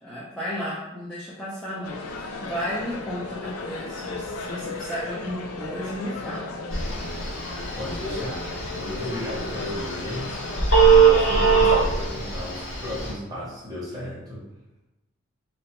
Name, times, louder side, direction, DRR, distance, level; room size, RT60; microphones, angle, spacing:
voice 1, 0.0-6.5, equal, 5° left, -9 dB, 0.3 m, -33 dB
sound 1, 1.8-10.7, left 3 dB, 90° left, 0.4 m, -35 dB
Telephone, 6.7-13.1, right 5 dB, 70° left, 0.8 m, -22 dB
voice 2, 7.7-10.2 10.7-14.4, left 1 dB, 20° right, -7 dB, 0.9 m, -34 dB
3.0 x 2.1 x 2.9 m, 0.99 s
head